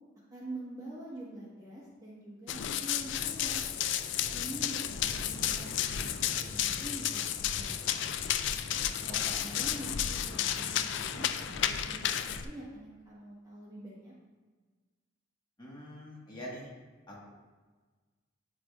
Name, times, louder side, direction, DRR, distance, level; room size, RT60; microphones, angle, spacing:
voice 1, 0.3-3.6 4.3-8.2 9.0-14.1, right 1 dB, 20° right, -6 dB, 1.2 m, -45 dB
Run, 2.5-12.4, left 10 dB, 65° left, 0.3 m, -32 dB
Waves surf, 2.9-12.6, left 1 dB, 50° left, 0.9 m, -47 dB
voice 2, 9.1-9.7 15.6-16.7 17.1-17.3, equal, 25° left, -5 dB, 1.5 m, -45 dB
8.4 x 4.9 x 2.4 m, 1.4 s
head